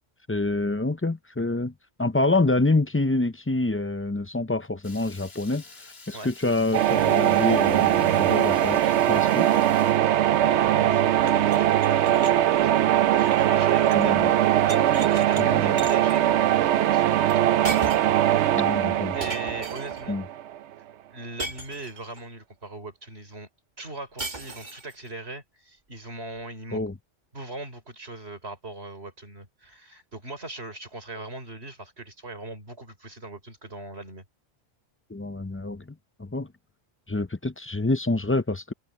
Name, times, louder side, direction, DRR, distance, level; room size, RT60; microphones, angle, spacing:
voice 1, 0.3-1.7 2.0-9.5 13.9-14.3 15.4-15.8 18.5-19.1 20.1-20.2 26.7-26.9 35.1-36.5 37.1-38.7, left 2 dB, 15° left, 0.4 m, -27 dB
Water tap faucet / Liquid, 4.8-10.0, left 3 dB, 60° left, 2.3 m, -48 dB
sound 1, 6.7-20.6, right 12 dB, 85° right, 0.9 m, -21 dB
voice 2, 10.0-17.5 19.1-20.2 21.1-23.5 23.8-26.8 27.3-34.2, right 2 dB, 65° right, 5.2 m, -39 dB
sound 2, 11.2-14.1 14.4-15.4 15.8-16.2 17.3-17.4 17.6-18.2 19.2-20.1 21.4-22.2 24.2-24.9, right 2 dB, 40° right, 1.8 m, -37 dB
omnidirectional pair, 1.1 m